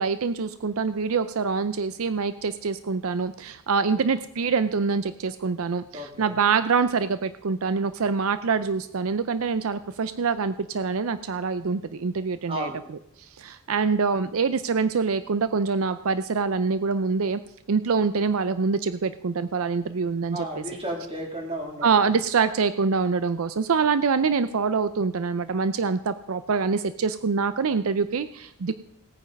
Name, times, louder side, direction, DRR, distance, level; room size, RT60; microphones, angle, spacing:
voice 1, 0.0-12.7 13.4-17.4 17.7-20.6 21.8-28.7, right 5 dB, 75° right, 12 dB, 0.5 m, -25 dB
voice 2, 5.9-6.3 12.5-12.8 20.3-21.9, right 1 dB, 25° right, 0 dB, 3.2 m, -33 dB
17.0 x 9.1 x 5.3 m, 0.74 s
head